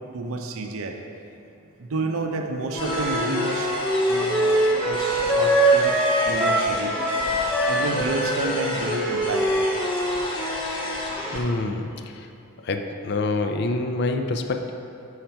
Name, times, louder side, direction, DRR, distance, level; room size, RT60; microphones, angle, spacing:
voice 1, 0.1-1.0 1.8-3.7 4.1-6.0 6.2-6.9 7.7-9.4, right 3 dB, 80° right, 4 dB, 0.6 m, -29 dB
sound 1, 2.7-11.4, left 1 dB, 25° left, 1.1 m, -32 dB
Wind instrument woodwind instrument, 2.7-6.7 7.0-10.9, right 1 dB, ahead, 0.6 m, -23 dB
voice 2, 11.3-12.3 12.6-14.7, left 2 dB, 50° left, 6 dB, 0.4 m, -26 dB
6.4 x 5.7 x 4.4 m, 2.7 s
head